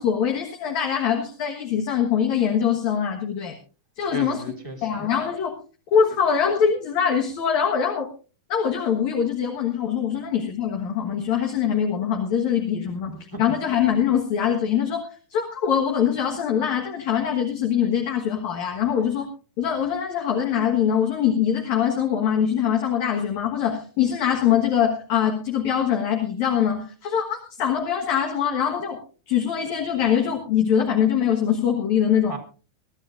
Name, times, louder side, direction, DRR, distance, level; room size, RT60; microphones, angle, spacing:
voice 1, 0.0-3.6 4.0-4.4 4.8-5.6 5.9-8.1 8.5-19.3 19.6-29.0 29.3-32.4, left 8 dB, 60° left, 1 dB, 2.5 m, -23 dB
voice 2, 4.1-5.0 13.1-13.7 32.3-32.4, right 2 dB, 10° left, 4 dB, 1.4 m, -36 dB
24.0 x 13.0 x 2.5 m, 0.35 s
omnidirectional pair, 4.3 m